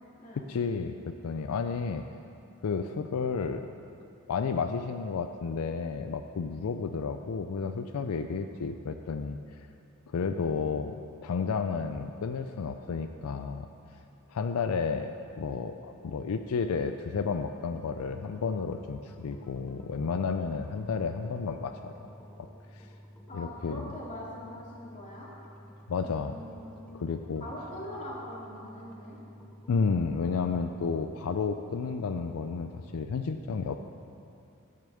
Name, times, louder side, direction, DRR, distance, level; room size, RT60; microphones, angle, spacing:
voice 1, 0.5-2.0 2.6-3.7 4.3-9.4 10.1-13.7 14.3-22.1 22.4-22.5 22.7-22.9 23.3-23.8 25.9-26.4 26.9-27.4 29.7-33.8, left 5 dB, 85° left, 7 dB, 0.4 m, -32 dB
sound 1, 17.6-33.0, equal, 5° left, 0.8 m, -51 dB
voice 2, 23.3-25.3 26.0-26.7 27.4-29.2, left 1 dB, 35° left, -6 dB, 2.6 m, -42 dB
10.5 x 6.6 x 7.7 m, 2.6 s
head